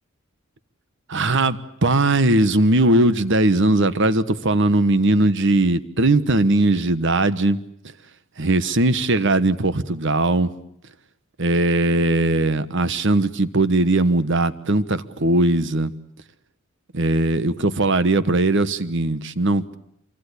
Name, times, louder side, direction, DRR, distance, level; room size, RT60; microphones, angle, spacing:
voice 1, 1.1-7.6 8.4-10.5 11.4-15.9 16.9-19.8, right 2 dB, 55° right, 14 dB, 1.2 m, -19 dB
26.0 x 23.5 x 8.4 m, 0.74 s
head